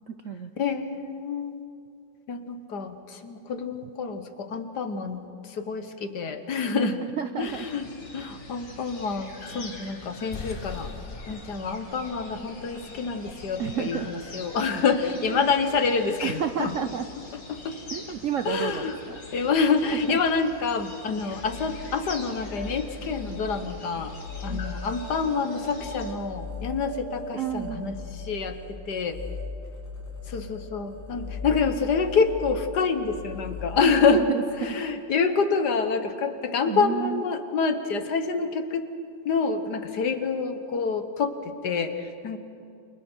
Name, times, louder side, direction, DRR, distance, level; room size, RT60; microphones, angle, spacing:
voice 1, 0.1-0.5 6.7-7.7 13.6-14.1 15.2-15.5 16.2-17.1 17.9-19.2 20.1-20.2 24.5-24.6 27.3-27.8 33.8-34.4 34.7-34.8 35.3-35.4 36.7-37.2, right 8 dB, 60° right, 9 dB, 0.8 m, -31 dB
voice 2, 0.6-1.6 2.3-5.2 5.5-7.0 7.4-10.9 11.3-16.7 17.5-17.7 18.1-18.2 18.5-19.0 19.3-24.1 24.4-29.2 30.3-34.2 34.6-38.8 39.3-41.3 41.6-42.4, left 5 dB, 65° left, 8 dB, 1.8 m, -27 dB
sound 1, 7.4-26.1, left 2 dB, 80° left, 3.1 m, -44 dB
sound 2, 10.3-17.4, left 4 dB, 40° left, 0.9 m, -44 dB
sound 3, 21.1-34.6, left 2 dB, 10° left, 6.8 m, -38 dB
29.5 x 28.0 x 4.6 m, 2.5 s
omnidirectional pair, 2.0 m